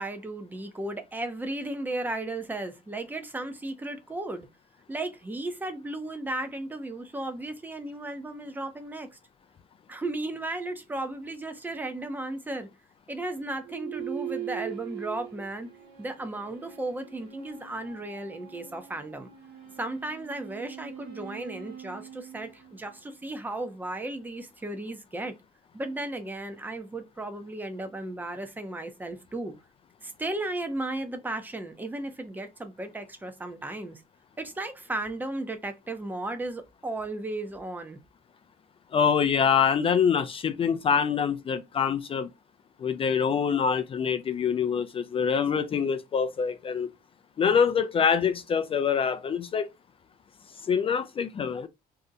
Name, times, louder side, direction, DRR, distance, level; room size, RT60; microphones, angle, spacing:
voice 1, 0.0-4.5 4.9-9.2 9.9-12.7 13.1-15.7 16.0-19.3 19.8-25.3 25.7-29.5 30.0-34.0 34.4-38.0, right 2 dB, 10° right, 0.6 m, -35 dB
sound 1, 13.6-23.3, right 12 dB, 85° right, 1.1 m, -42 dB
voice 2, 38.9-42.3 42.8-46.9 47.4-49.7 50.7-51.7, left 7 dB, 35° left, 0.4 m, -25 dB
2.7 x 2.1 x 3.7 m
cardioid pair, 110°, 17 cm